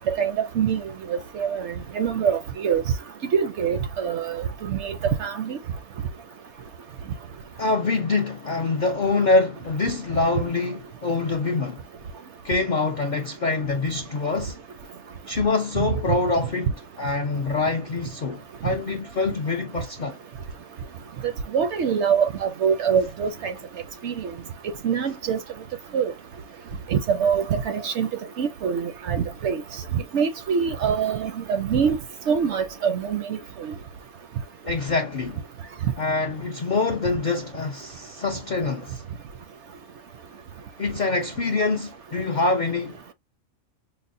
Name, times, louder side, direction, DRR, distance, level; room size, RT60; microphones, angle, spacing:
voice 1, 0.1-0.8 1.1-2.8 3.3-5.6 21.5-23.5 24.0-24.3 24.8-25.4 25.9-26.1 26.9-28.1 28.4-29.6 29.9-32.0 32.3-33.7, right 7 dB, 65° right, 0.7 m, -24 dB
voice 2, 7.6-11.8 12.4-14.6 15.3-20.2 34.6-35.4 36.0-39.0 40.8-43.0, left 3 dB, 65° left, 0.4 m, -25 dB
5.3 x 2.1 x 2.5 m
omnidirectional pair, 1.5 m